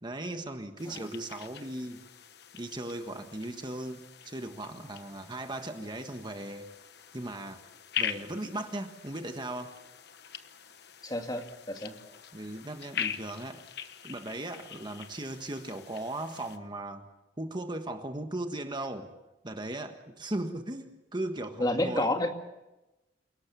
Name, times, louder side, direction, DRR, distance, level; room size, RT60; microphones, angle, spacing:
voice 1, 0.0-2.0 2.5-6.7 7.1-7.6 8.0-9.8 12.3-13.6 14.0-17.0 17.4-19.1 19.4-22.1, right 1 dB, 25° right, 6 dB, 1.5 m, -37 dB
sound 1, 0.8-16.6, left 8 dB, 60° left, 1.2 m, -42 dB
voice 2, 11.0-11.9 21.6-22.3, left 1 dB, 20° left, 4 dB, 2.2 m, -29 dB
28.5 x 18.0 x 7.0 m, 1.0 s
head